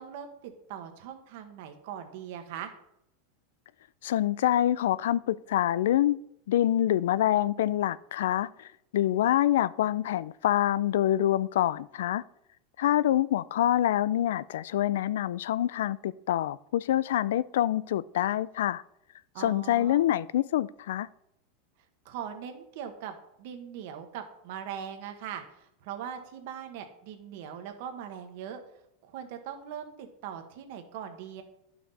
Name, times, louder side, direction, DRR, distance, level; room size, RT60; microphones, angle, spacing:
voice 1, 0.0-2.7 19.3-20.0 22.0-28.6 29.0-31.4, right 8 dB, 50° right, 1.2 m, -40 dB
voice 2, 4.0-6.2 6.5-12.2 12.8-18.8 19.4-21.1, left 12 dB, 85° left, 0.3 m, -26 dB
11.5 x 5.9 x 4.1 m
supercardioid pair, 180°, 0 cm